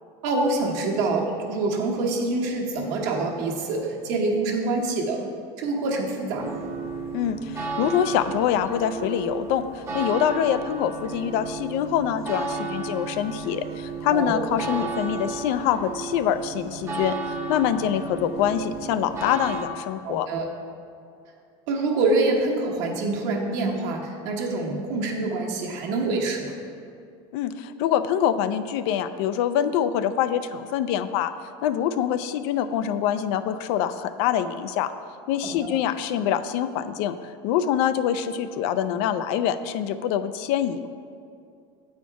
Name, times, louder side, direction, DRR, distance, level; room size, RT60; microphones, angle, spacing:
voice 1, 0.2-5.2 5.6-6.5 14.1-14.5 20.0-20.4 21.7-26.5 35.4-35.8, right 3 dB, 65° right, -1 dB, 1.2 m, -26 dB
sound 1, 6.4-19.6, right 3 dB, 20° right, 0.8 m, -33 dB
voice 2, 7.1-20.3 27.3-31.3 31.6-34.9 35.3-37.2 37.4-40.9, left 9 dB, 70° left, 12 dB, 0.4 m, -25 dB
8.1 x 4.4 x 4.6 m, 2.4 s
cardioid pair, 145°, 14 cm